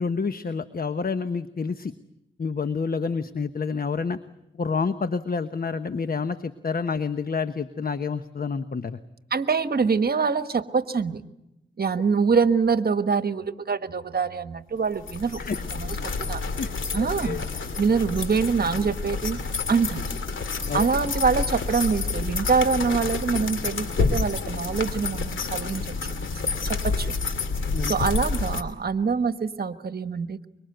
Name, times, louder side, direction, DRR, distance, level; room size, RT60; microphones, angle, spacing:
voice 1, 0.0-1.9 2.4-4.2 4.5-9.0 15.4-15.6 16.6-16.7 17.2-17.4 20.7-20.8 27.7-27.9, left 5 dB, 45° left, 10 dB, 1.1 m, -28 dB
voice 2, 9.3-11.2 11.8-15.4 15.7-16.4 16.9-17.4 17.8-19.4 19.7-20.0 20.7-25.9 26.6-27.1 27.8-30.5, right 5 dB, 50° right, 10 dB, 1.4 m, -25 dB
sound 1, 14.9-28.6, left 4 dB, 75° left, 2.7 m, -29 dB
25.0 x 23.5 x 7.9 m, 0.90 s
cardioid pair, 70°, 20 cm